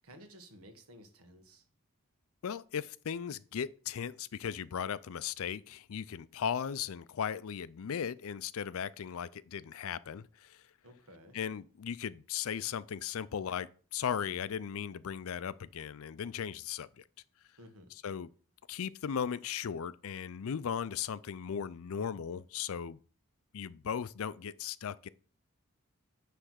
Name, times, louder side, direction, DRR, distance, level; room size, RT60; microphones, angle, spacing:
voice 1, 0.0-1.6 10.8-11.4 17.6-17.9, equal, 80° right, 1.6 m, -54 dB
voice 2, 2.4-10.6 11.3-17.0 18.0-18.3 18.7-23.0 23.5-25.1, left 8 dB, 65° left, 0.4 m, -37 dB
9.8 x 3.4 x 6.4 m
head